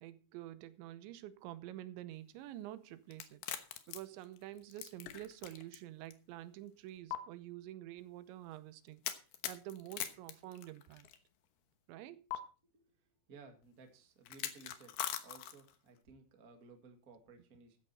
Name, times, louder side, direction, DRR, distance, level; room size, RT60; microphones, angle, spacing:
voice 1, 0.0-3.4 3.9-9.0 9.5-11.1 11.9-12.4, right 14 dB, 80° right, 3.1 m, -48 dB
sound 1, 3.1-5.8 6.1-6.2 7.1-7.2 9.0-11.2 12.3-12.4 14.3-15.8, left 12 dB, 70° left, 2.8 m, -41 dB
voice 2, 13.3-14.9 15.2-17.8, right 4 dB, 55° right, 0.9 m, -58 dB
14.5 x 9.7 x 4.3 m
omnidirectional pair, 5.3 m